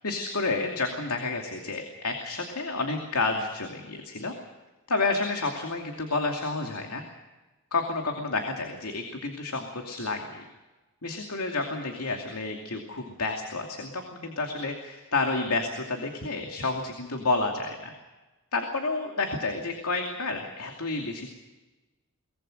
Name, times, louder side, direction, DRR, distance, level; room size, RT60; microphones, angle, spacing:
voice 1, 0.0-4.3 4.9-7.0 7.7-10.4 11.0-17.9 18.5-21.3, left 3 dB, 90° left, 3 dB, 2.7 m, -30 dB
23.5 x 19.5 x 6.5 m, 1.2 s
head